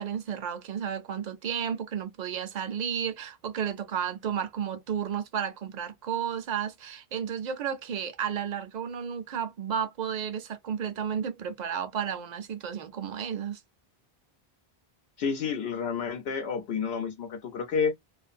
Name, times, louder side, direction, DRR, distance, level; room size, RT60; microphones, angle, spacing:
voice 1, 0.0-13.6, right 8 dB, 50° right, 0.6 m, -32 dB
voice 2, 15.2-17.9, left 6 dB, 80° left, 0.8 m, -30 dB
2.5 x 2.5 x 2.5 m
omnidirectional pair, 1.0 m